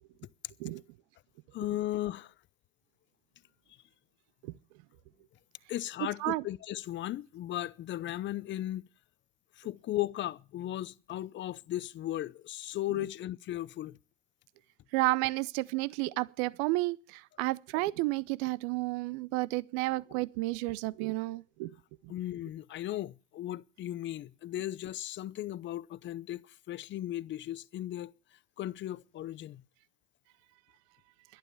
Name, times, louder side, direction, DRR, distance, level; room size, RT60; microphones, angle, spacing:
voice 1, 1.5-2.3 5.7-8.8 9.6-14.0 22.1-28.1 28.6-29.6, left 14 dB, 30° left, 0.6 m, -36 dB
voice 2, 14.9-21.7, right 21 dB, 60° right, 0.7 m, -31 dB
11.5 x 11.0 x 7.0 m
hypercardioid pair, 105°, 37 cm